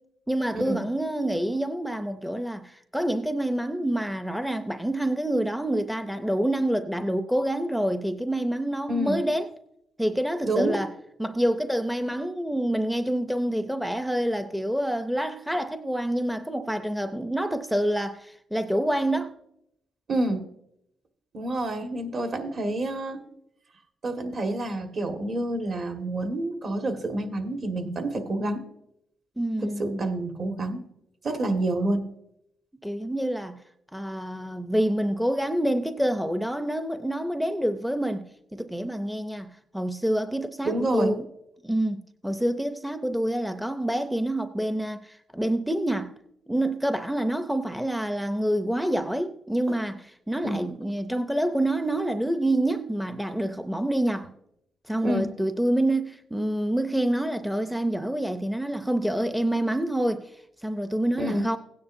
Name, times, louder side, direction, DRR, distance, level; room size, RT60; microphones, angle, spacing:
voice 1, 0.3-9.5 10.0-10.9 11.2-19.3 29.4-30.1 32.8-33.6 33.9-41.3 41.6-46.1 46.5-54.3 54.9-61.6, right 1 dB, ahead, 0.5 m, -27 dB
voice 2, 10.4-10.8 20.1-20.4 21.3-23.3 24.0-28.6 29.6-30.8 31.2-32.1 40.6-41.1 49.7-49.8 50.4-50.6 55.0-55.3 61.2-61.5, right 1 dB, 50° right, 1.7 m, -28 dB
16.5 x 9.5 x 2.6 m
cardioid pair, 90°, 0 cm